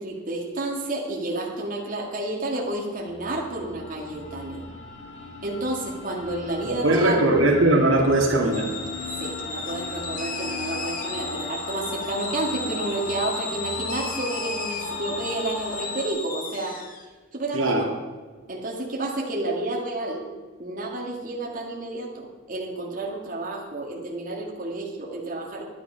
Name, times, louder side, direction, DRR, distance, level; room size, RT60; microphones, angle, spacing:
voice 1, 0.0-4.6 5.4-7.3 9.2-16.8 17.3-17.9 18.5-20.3 20.6-25.6, right 2 dB, 45° right, -2 dB, 2.0 m, -30 dB
sound 1, 2.6-16.1, left 3 dB, 65° left, 2.1 m, -37 dB
voice 2, 6.7-8.7 17.5-17.9, right 2 dB, 85° right, 0 dB, 2.2 m, -20 dB
sound 2, 8.5-17.0, left 3 dB, 45° left, 1.5 m, -35 dB
11.0 x 10.0 x 5.6 m, 1.4 s
head